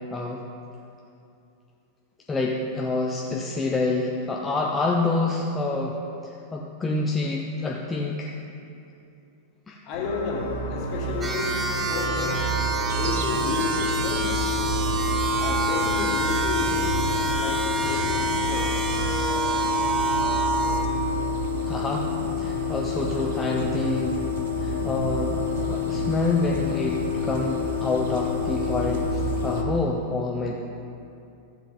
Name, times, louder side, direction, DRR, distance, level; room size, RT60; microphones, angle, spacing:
voice 1, 0.1-0.4 2.3-6.0 6.2-8.3 9.7-9.8 21.7-22.1 22.4-24.2 24.6-25.4 25.6-30.6, left 3 dB, 15° left, -1 dB, 0.8 m, -27 dB
voice 2, 9.8-11.6 11.9-12.5 12.9-14.3 15.3-18.8, left 3 dB, 40° left, -2 dB, 2.1 m, -32 dB
sound 1, 9.9-29.7, left 4 dB, 65° left, 1.3 m, -28 dB
sound 2, 11.2-20.8, right 3 dB, 15° right, 1.1 m, -28 dB
sound 3, 12.9-29.6, right 6 dB, 55° right, 0.8 m, -37 dB
15.0 x 8.1 x 3.9 m, 2.7 s
figure-of-eight pair, 90°, 0 cm